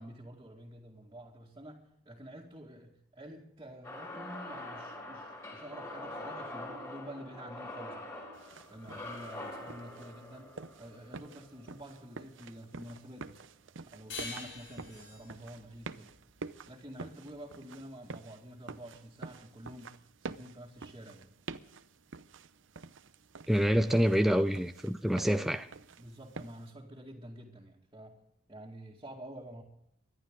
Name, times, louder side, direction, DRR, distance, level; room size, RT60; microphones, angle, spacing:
voice 1, 0.0-8.1 8.7-10.5 10.8-13.4 13.9-16.1 16.7-20.0 20.2-21.3 25.1-25.6 26.0-28.2 28.5-29.6, equal, 20° right, 2.2 m, -48 dB
sound 1, 3.8-12.0, left 1 dB, 20° left, 4.6 m, -44 dB
sound 2, 8.3-26.7, right 4 dB, 75° right, 0.8 m, -48 dB
sound 3, 14.1-17.3, left 4 dB, 75° left, 6.9 m, -46 dB
voice 2, 23.5-25.6, equal, ahead, 0.4 m, -27 dB
24.5 x 11.5 x 3.8 m
head